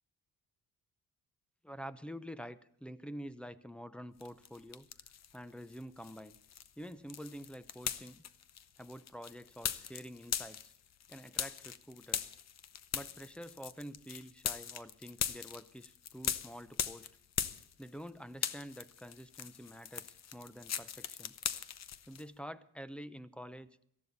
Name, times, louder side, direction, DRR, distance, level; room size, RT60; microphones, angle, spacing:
voice 1, 1.6-4.9 5.3-6.4 6.8-8.2 8.8-10.7 11.1-12.4 12.9-17.1 17.8-21.4 22.1-23.7, equal, 5° left, 14 dB, 0.7 m, -48 dB
sound 1, 4.2-5.4 5.7-18.1 18.3-22.2, left 9 dB, 50° left, 0.9 m, -40 dB
18.0 x 14.0 x 4.1 m, 0.72 s
cardioid pair, 100°, 34 cm